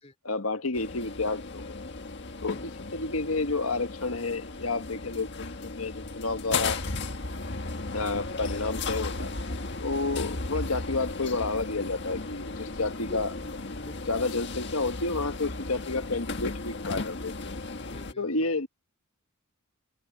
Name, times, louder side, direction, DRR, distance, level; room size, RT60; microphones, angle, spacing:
voice 1, 0.2-1.7 2.4-6.8 7.9-9.3 9.8-13.3 14.1-17.5 18.2-18.7, left 3 dB, 85° left, 1.7 m, -30 dB
sound 1, 0.7-18.1, left 3 dB, 55° left, 1.6 m, -35 dB
voice 2, 2.5-2.8 10.2-10.4 12.7-14.2 15.8-15.9 17.7-18.5, left 1 dB, 30° left, 3.6 m, -50 dB
head